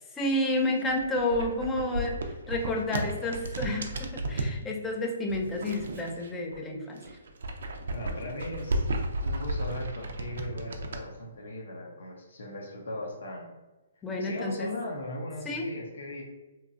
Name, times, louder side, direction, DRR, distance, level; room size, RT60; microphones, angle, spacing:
voice 1, 0.2-7.0 14.0-14.8 15.4-15.7, left 1 dB, 15° left, 1 dB, 0.4 m, -30 dB
sound 1, 0.7-4.6 5.3-6.6 6.9-11.0, right 1 dB, 70° right, 0.4 m, -33 dB
voice 2, 7.9-13.5 14.2-16.2, left 1 dB, 80° left, 0 dB, 0.6 m, -38 dB
2.8 x 2.2 x 2.5 m, 1.1 s
hypercardioid pair, 150°, 0 cm